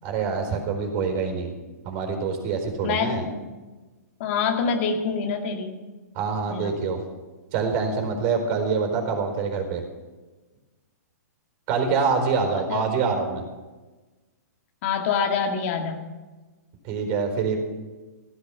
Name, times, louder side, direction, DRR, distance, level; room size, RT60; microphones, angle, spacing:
voice 1, 0.0-1.5 1.8-3.3 6.1-7.0 7.5-9.8 11.7-13.4 16.8-17.6, right 5 dB, 40° right, 4 dB, 4.4 m, -25 dB
voice 2, 2.8-3.4 4.2-5.8 6.5-6.7 12.5-12.8 14.8-16.0, left 6 dB, 45° left, 4 dB, 2.0 m, -26 dB
16.0 x 13.0 x 5.9 m, 1.2 s
hypercardioid pair, 125°, 9 cm